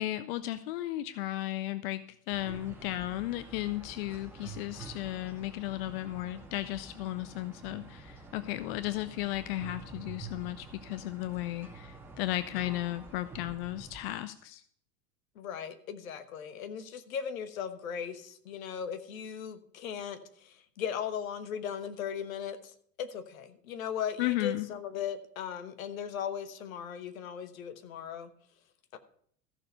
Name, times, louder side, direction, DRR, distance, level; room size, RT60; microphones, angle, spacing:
voice 1, 0.0-2.0 2.3-14.6 24.2-24.7, left 16 dB, 40° left, 13 dB, 0.5 m, -35 dB
sound 1, 2.3-14.1, right 4 dB, 5° right, 2.2 m, -48 dB
voice 2, 15.3-28.3 28.9-29.0, left 8 dB, 60° left, 10 dB, 1.2 m, -38 dB
14.0 x 6.6 x 5.4 m, 0.62 s
figure-of-eight pair, 85°, 47 cm